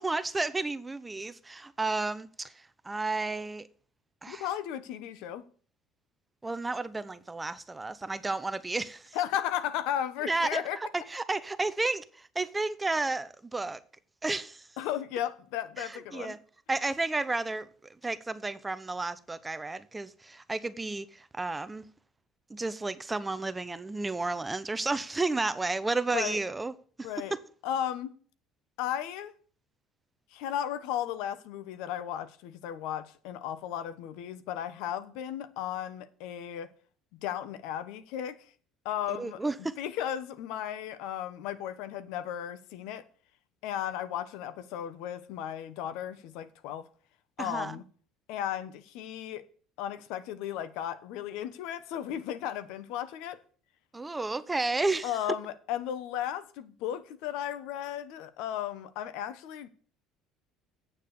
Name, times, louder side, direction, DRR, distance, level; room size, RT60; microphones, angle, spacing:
voice 1, 0.0-2.5 2.8-3.7 4.2-4.5 6.4-9.2 10.3-10.6 10.9-13.8 14.2-14.6 15.8-16.4 16.7-17.7 18.0-21.9 22.5-26.7 27.0-27.4 39.1-39.7 47.4-47.8 53.9-55.1, right 3 dB, 15° right, 0.7 m, -32 dB
voice 2, 4.3-5.4 9.1-10.8 14.8-16.4 26.1-26.4 27.0-27.3 27.6-28.1 28.8-29.3 30.3-36.7 37.1-38.4 38.8-39.4 39.8-43.0 43.6-46.9 47.4-47.8 48.3-49.4 49.8-53.4 55.0-59.7, left 10 dB, 80° left, 1.1 m, -35 dB
8.7 x 7.3 x 6.7 m
supercardioid pair, 110°, 0 cm